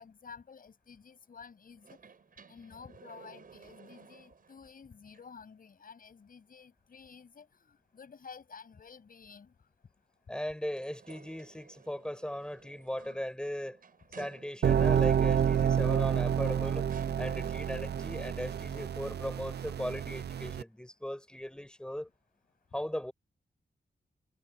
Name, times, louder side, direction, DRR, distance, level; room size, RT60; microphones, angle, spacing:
voice 1, 0.0-2.1 2.5-9.7, left 5 dB, 60° left, 7.7 m, -52 dB
sound 1, 1.8-4.7 5.1-5.2 10.6-14.9 16.1-16.2 16.9-18.0, right 5 dB, 60° right, 6.3 m, -55 dB
voice 2, 10.3-13.8 14.1-16.9 17.2-22.1 22.7-23.1, left 1 dB, 5° left, 7.7 m, -38 dB
sound 2, 14.6-20.6, right 8 dB, 85° right, 0.6 m, -29 dB
wide cardioid pair, 160°, 17 cm